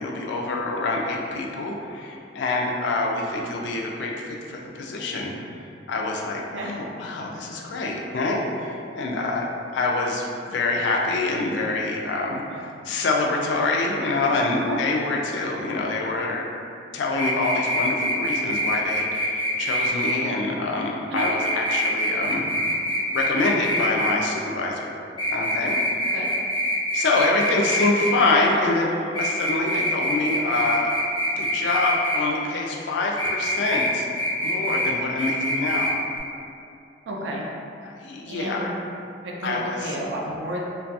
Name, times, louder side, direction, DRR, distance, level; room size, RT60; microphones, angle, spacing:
voice 1, 0.0-5.3 5.9-16.5 16.9-22.5 23.1-24.9 25.3-25.8 26.9-31.0 31.3-34.1 34.4-36.0 37.8-38.7 39.4-40.0, left 2 dB, 85° left, -1 dB, 0.4 m, -26 dB
sound 1, 17.2-20.1 21.2-24.1 25.2-28.1 29.1-32.2 33.2-33.9 34.2-34.9 35.2-35.9 36.2-36.3, equal, 25° left, 0.5 m, -25 dB
voice 2, 37.1-37.5 38.3-38.8 39.2-40.6, right 1 dB, 85° right, -2 dB, 0.3 m, -31 dB
2.2 x 2.2 x 2.7 m, 2.5 s
head